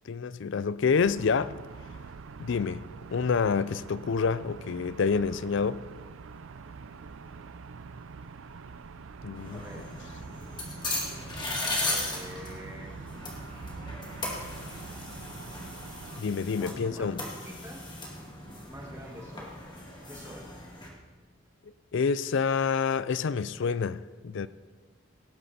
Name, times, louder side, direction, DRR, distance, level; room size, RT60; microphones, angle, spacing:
voice 1, 0.1-1.5 2.4-5.8 9.2-9.6 16.2-17.2 21.9-24.5, left 5 dB, 55° left, 0.4 m, -28 dB
sound 1, 1.0-16.2, right 5 dB, 65° right, 0.5 m, -45 dB
sound 2, 9.3-20.9, left 2 dB, 20° left, 2.2 m, -37 dB
voice 2, 9.5-9.9 11.6-13.0 16.6-17.9 18.7-19.5 20.1-20.5, equal, 15° right, 1.9 m, -46 dB
18.0 x 9.8 x 4.3 m
head